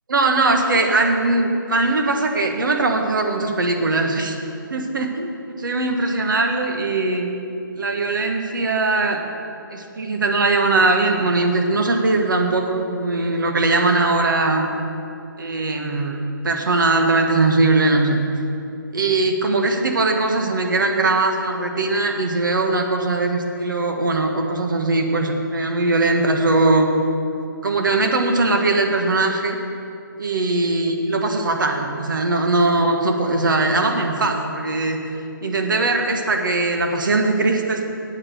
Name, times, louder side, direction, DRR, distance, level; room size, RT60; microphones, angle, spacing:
voice 1, 0.1-4.4 4.7-5.3 5.6-7.3 7.8-9.2 9.7-14.7 15.4-18.2 18.9-26.9 27.6-29.6 30.2-35.0 35.4-37.8, right 2 dB, 65° right, 3 dB, 1.5 m, -20 dB
8.7 x 8.2 x 7.8 m, 2.7 s
hypercardioid pair, 165°, 12 cm